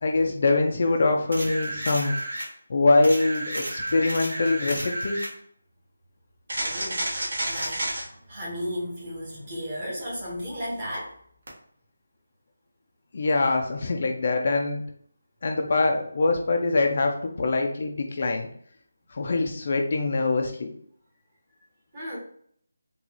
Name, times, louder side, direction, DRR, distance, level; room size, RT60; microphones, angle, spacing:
voice 1, 0.0-2.2 2.7-5.2 13.1-14.8 15.4-18.5 19.1-20.7, left 3 dB, 40° left, 3 dB, 0.4 m, -24 dB
sound 1, 1.3-2.5 3.0-5.3 6.5-8.0 11.5-11.6, right 1 dB, 60° right, 1.2 m, -31 dB
voice 2, 6.6-7.1 7.4-8.0 8.2-11.2 21.9-22.2, equal, 25° right, -5 dB, 1.1 m, -34 dB
3.9 x 2.3 x 2.9 m, 0.63 s
figure-of-eight pair, 175°, 0 cm